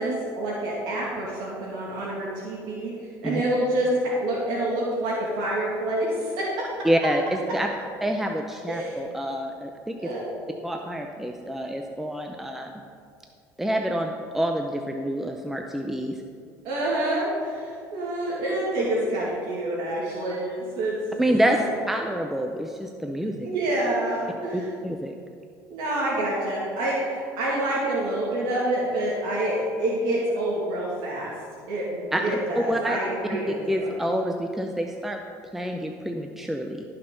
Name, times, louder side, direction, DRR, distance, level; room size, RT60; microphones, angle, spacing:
voice 1, 0.0-6.7 8.7-9.0 10.0-10.3 16.6-21.2 21.4-21.6 23.4-24.7 25.7-31.3 31.7-33.9, right 1 dB, 75° right, -5 dB, 2.3 m, -27 dB
voice 2, 6.8-7.7 8.0-10.1 10.6-12.7 13.6-16.2 21.2-23.5 24.5-25.1 32.1-33.0 33.5-35.2 35.5-36.8, equal, 5° right, 3 dB, 0.6 m, -27 dB
15.5 x 5.8 x 3.9 m, 2.3 s
supercardioid pair, 110°, 8 cm